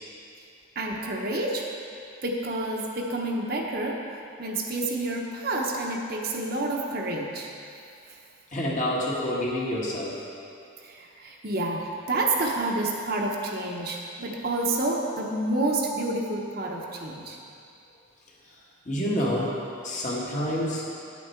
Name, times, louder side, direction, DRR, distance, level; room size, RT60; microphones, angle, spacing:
voice 1, 0.7-1.7 2.2-4.0 4.4-7.5 10.8-17.4, right 2 dB, 45° right, -1 dB, 1.0 m, -29 dB
voice 2, 8.5-10.2 18.8-20.9, equal, 35° left, -4 dB, 1.5 m, -28 dB
10.0 x 8.4 x 4.5 m, 2.5 s
head